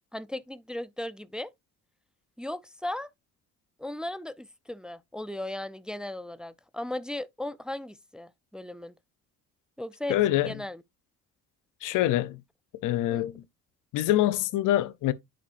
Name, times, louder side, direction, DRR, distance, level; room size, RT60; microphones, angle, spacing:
voice 1, 0.1-1.5 2.4-3.1 3.8-8.9 9.8-10.8 13.1-13.2, left 1 dB, 5° right, 0.4 m, -37 dB
voice 2, 10.1-10.5 11.8-12.4 12.8-13.4 13.9-15.1, left 14 dB, 90° left, 0.6 m, -25 dB
10.0 x 4.5 x 2.5 m
cardioid pair, 90°, 30 cm